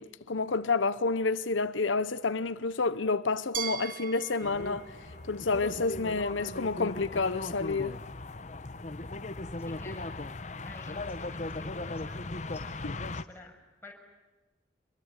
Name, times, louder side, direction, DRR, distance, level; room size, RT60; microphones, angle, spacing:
voice 1, 0.0-4.8 5.3-8.0, left 3 dB, 85° left, 0.9 m, -29 dB
Glass, 3.5-6.5, right 9 dB, 45° right, 0.9 m, -41 dB
sound 1, 4.4-13.2, left 2 dB, 40° left, 0.9 m, -38 dB
voice 2, 9.7-10.1 10.4-13.9, left 2 dB, 10° left, 6.3 m, -51 dB
26.5 x 22.5 x 9.7 m
head